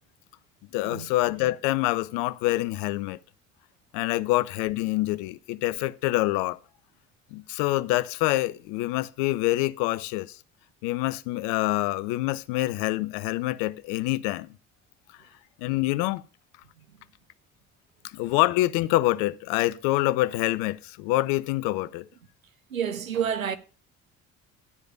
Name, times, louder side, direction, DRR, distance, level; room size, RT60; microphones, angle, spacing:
voice 1, 0.7-3.2 3.9-6.6 7.3-10.4 10.8-14.6 15.6-16.2 18.1-22.1, left 18 dB, 60° left, 0.6 m, -26 dB
voice 2, 22.7-23.6, right 8 dB, 90° right, 0.7 m, -29 dB
11.0 x 5.0 x 6.9 m
figure-of-eight pair, 50°, 39 cm